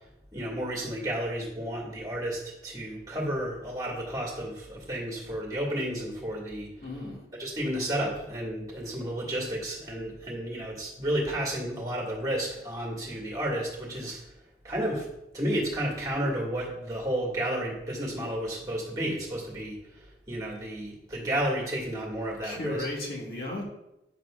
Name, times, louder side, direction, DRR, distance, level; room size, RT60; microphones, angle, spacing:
voice 1, 0.3-6.7 7.4-14.3 14.6-15.1 15.3-22.9, right 1 dB, 20° right, -3 dB, 2.1 m, -32 dB
voice 2, 6.8-7.3 22.4-23.6, left 1 dB, 55° left, -3 dB, 2.1 m, -35 dB
9.7 x 7.7 x 2.5 m, 0.88 s
head